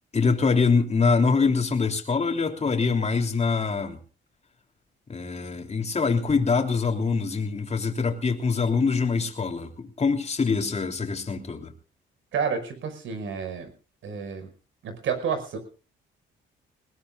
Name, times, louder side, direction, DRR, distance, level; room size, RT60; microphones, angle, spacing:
voice 1, 0.1-4.0 5.1-11.7, left 4 dB, 35° left, 3.3 m, -24 dB
voice 2, 12.3-13.7 14.0-14.5 14.8-15.6, right 6 dB, 75° right, 5.8 m, -30 dB
21.0 x 20.0 x 2.5 m
cardioid pair, 90°, 20 cm